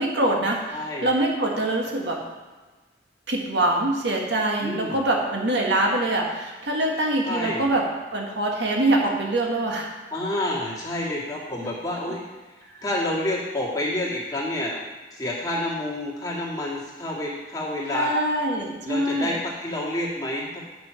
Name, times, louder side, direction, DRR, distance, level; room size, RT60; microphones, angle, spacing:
voice 1, 0.0-2.2 3.3-7.8 8.1-9.9 12.7-12.8 17.9-19.4, right 1 dB, 80° right, 0 dB, 1.8 m, -24 dB
voice 2, 0.7-1.1 4.6-5.0 7.2-7.6 10.1-12.2 12.8-14.8 15.1-18.1 18.8-20.6, left 1 dB, 20° left, -5 dB, 2.1 m, -28 dB
9.2 x 6.1 x 5.8 m, 1.3 s
head